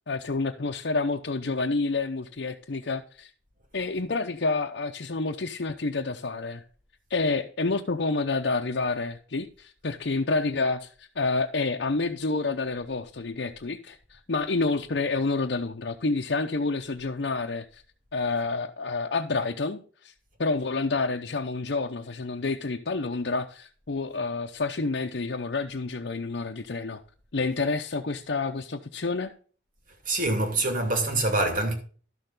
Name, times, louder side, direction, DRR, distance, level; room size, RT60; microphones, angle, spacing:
voice 1, 0.1-3.3 3.7-6.6 7.1-17.8 18.1-20.1 20.4-27.0 27.3-29.3, left 3 dB, 70° left, 0.8 m, -29 dB
voice 2, 30.1-31.7, right 2 dB, 50° right, 2.5 m, -25 dB
12.5 x 6.7 x 3.9 m
head